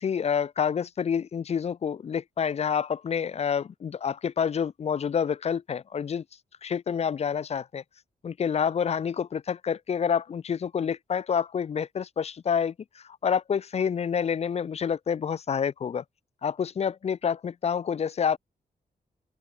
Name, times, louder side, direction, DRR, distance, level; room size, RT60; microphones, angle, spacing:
voice 1, 0.0-6.2 6.6-7.8 8.2-16.0 16.4-18.4, left 7 dB, 40° left, 0.3 m, -28 dB
open air
cardioid pair, 95°, 17 cm